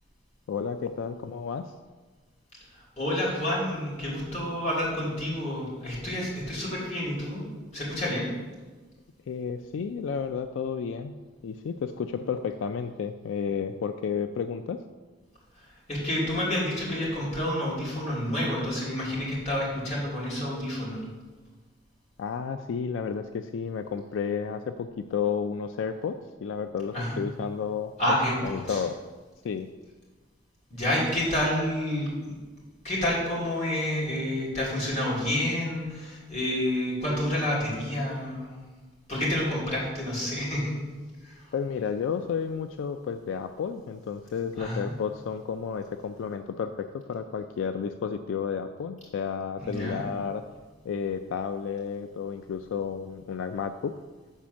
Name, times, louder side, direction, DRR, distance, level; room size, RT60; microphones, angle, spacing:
voice 1, 0.5-1.6 9.3-11.1 11.4-14.8 22.2-27.9 28.4-29.0 29.4-29.7 41.5-50.4 50.9-53.9, left 6 dB, 80° left, 8 dB, 0.3 m, -32 dB
voice 2, 3.0-7.4 7.7-8.3 15.9-21.0 26.9-27.2 28.0-28.8 30.7-32.3 32.8-38.6 39.1-40.7 41.2-41.4 44.6-44.9 49.6-50.0, left 1 dB, 35° left, -6 dB, 2.6 m, -29 dB
7.2 x 4.2 x 6.2 m, 1.3 s
head